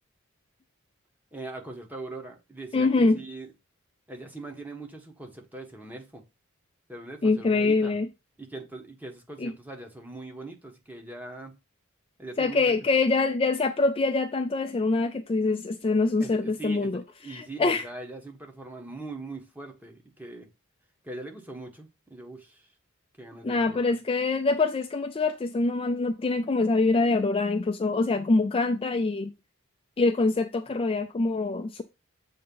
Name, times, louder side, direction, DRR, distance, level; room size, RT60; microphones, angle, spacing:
voice 1, 1.3-3.5 4.1-6.2 6.9-8.0 8.4-11.5 12.2-12.7 16.2-20.5 21.0-22.7 23.2-23.9, right 2 dB, 10° right, 1.3 m, -41 dB
voice 2, 2.7-3.2 7.2-8.1 9.4-9.5 12.4-17.0 17.3-17.9 23.4-29.3 30.0-31.8, left 3 dB, 25° left, 0.4 m, -24 dB
7.6 x 2.8 x 5.4 m
head